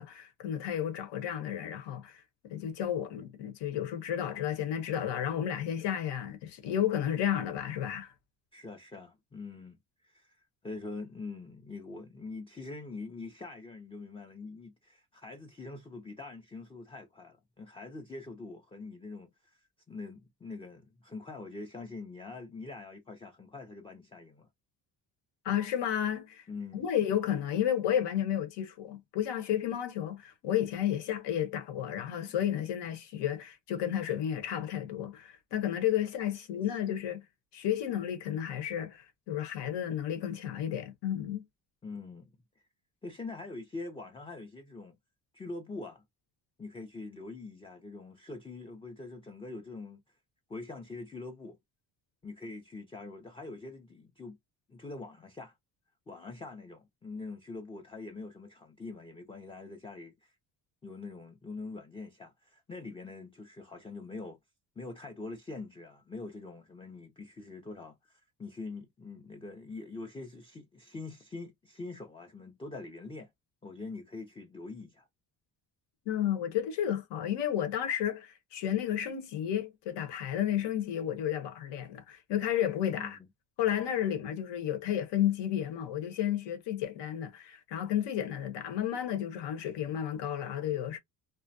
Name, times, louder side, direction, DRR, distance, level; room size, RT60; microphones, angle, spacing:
voice 1, 0.0-2.2 2.5-8.1 25.4-26.4 26.7-37.2 37.5-41.4 76.1-83.2 83.6-91.0, left 10 dB, 80° left, 1.0 m, -32 dB
voice 2, 8.5-10.4 10.6-19.6 19.9-24.5 26.5-26.9 41.8-42.2 43.0-45.0 45.3-46.0 46.6-50.0 50.5-51.6 52.2-54.4 54.7-55.5 56.1-60.3 60.8-64.4 64.8-73.3 73.6-75.1 82.9-83.2, left 3 dB, 15° left, 0.4 m, -44 dB
2.5 x 2.1 x 2.6 m
cardioid pair, 125°, 42 cm